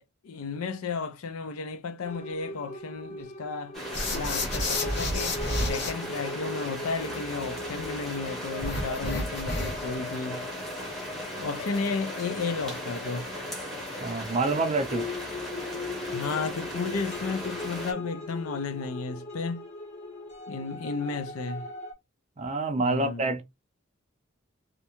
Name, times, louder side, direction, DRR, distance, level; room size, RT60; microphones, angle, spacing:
voice 1, 0.2-3.8 4.1-10.5 11.4-13.3 16.1-19.6 20.5-21.7 22.8-23.2, left 4 dB, 80° left, 0.5 m, -33 dB
sound 1, 2.0-21.9, left 3 dB, 30° left, 0.7 m, -40 dB
sound 2, 3.7-17.9, equal, ahead, 0.8 m, -37 dB
sound 3, 3.9-5.9 8.6-9.9, left 1 dB, 50° left, 1.0 m, -30 dB
voice 2, 14.0-15.1 22.4-23.4, right 3 dB, 30° right, 0.5 m, -27 dB
2.4 x 2.1 x 2.9 m
head